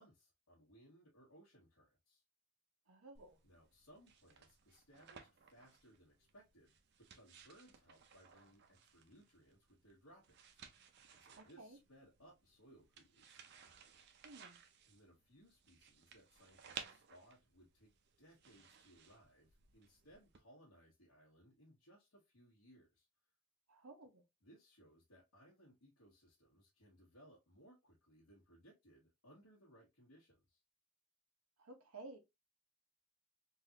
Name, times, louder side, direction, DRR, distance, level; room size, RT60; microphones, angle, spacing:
voice 1, 0.0-2.2 3.4-6.7 7.1-10.8 11.1-13.6 14.9-17.9 18.2-23.1 24.4-30.6, equal, 85° left, 1.4 m, -65 dB
voice 2, 2.9-3.4 11.4-11.8 14.2-14.6 23.7-24.2 31.6-32.2, right 2 dB, 90° right, 1.0 m, -55 dB
sound 1, 3.1-20.4, right 7 dB, 50° right, 0.5 m, -59 dB
3.8 x 2.5 x 2.8 m
head